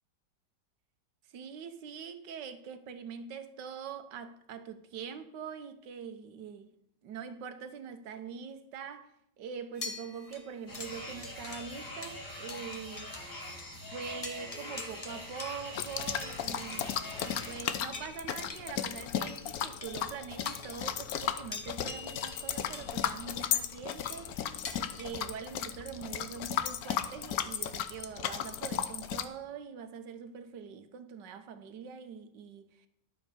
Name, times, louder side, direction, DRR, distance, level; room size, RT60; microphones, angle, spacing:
voice 1, 1.3-6.7 7.0-13.1 13.9-32.9, right 7 dB, 80° right, 1.5 m, -44 dB
sound 1, 9.7-13.3 13.6-13.7 14.1-25.0, left 3 dB, 25° left, 0.8 m, -47 dB
sound 2, 10.7-17.6, left 1 dB, 45° left, 2.8 m, -44 dB
sound 3, 15.7-29.3, left 9 dB, 65° left, 1.1 m, -35 dB
11.5 x 7.5 x 5.4 m
omnidirectional pair, 1.9 m